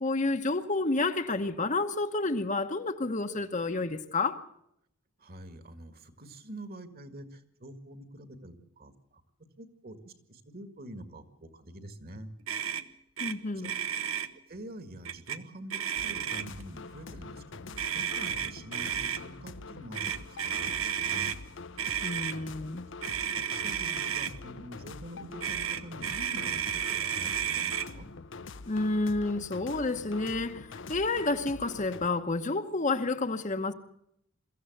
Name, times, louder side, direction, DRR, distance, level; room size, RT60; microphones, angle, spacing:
voice 1, 0.0-4.4 13.2-13.7 22.0-22.8 28.7-33.7, left 3 dB, 35° left, 1.0 m, -30 dB
voice 2, 5.2-9.2 9.6-12.3 13.5-13.7 14.5-21.4 23.0-23.1 23.5-28.1, right 1 dB, 45° right, 1.9 m, -46 dB
Motor vehicle (road), 12.5-12.8 13.2-13.3 13.6-14.3 15.1-15.4 15.7-16.6 17.8-19.2 19.9-21.4 21.8-22.4 23.0-24.3 25.4-27.9, right 9 dB, 80° right, 1.0 m, -32 dB
sound 1, 16.0-32.1, left 3 dB, 60° left, 0.8 m, -45 dB
23.0 x 14.5 x 7.9 m
head